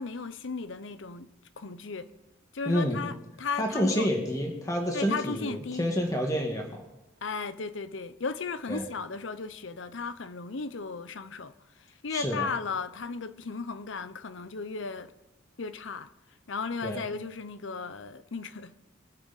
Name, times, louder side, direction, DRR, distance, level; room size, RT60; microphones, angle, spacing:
voice 1, 0.0-2.1 2.5-4.1 4.9-5.9 7.2-11.5 12.0-15.1 15.6-16.1 16.5-18.8, left 4 dB, 70° left, 0.8 m, -35 dB
voice 2, 2.6-3.0 3.6-6.8 8.7-8.8 12.1-12.5 16.8-17.0, equal, 15° left, 1.7 m, -28 dB
24.0 x 8.8 x 4.1 m
head